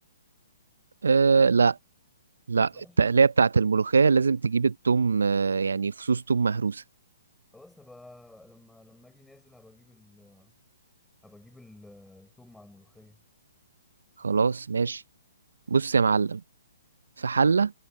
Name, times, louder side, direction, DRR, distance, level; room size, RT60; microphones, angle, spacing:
voice 1, 1.0-1.8 2.5-6.8 14.2-15.0 15.7-16.4 17.2-17.7, right 5 dB, 85° right, 0.5 m, -22 dB
voice 2, 2.5-3.0 7.5-10.5 11.2-13.2, left 2 dB, 5° left, 5.6 m, -53 dB
hypercardioid pair, 145°, 0 cm